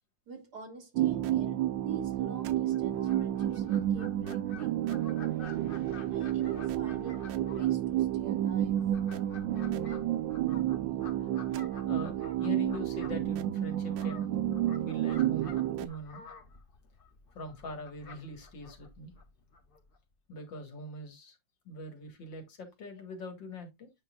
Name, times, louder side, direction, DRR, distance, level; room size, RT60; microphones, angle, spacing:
voice 1, 0.3-5.7 6.1-8.8, right 4 dB, 60° right, 2.5 m, -47 dB
sound 1, 0.9-15.9, right 12 dB, 85° right, 1.4 m, -30 dB
Fowl, 2.7-20.0, left 4 dB, 40° left, 0.8 m, -52 dB
voice 2, 11.8-14.3 14.8-16.3 17.3-19.1 20.3-21.4 21.7-23.9, left 1 dB, 80° left, 2.4 m, -42 dB
8.8 x 5.6 x 2.4 m
omnidirectional pair, 2.0 m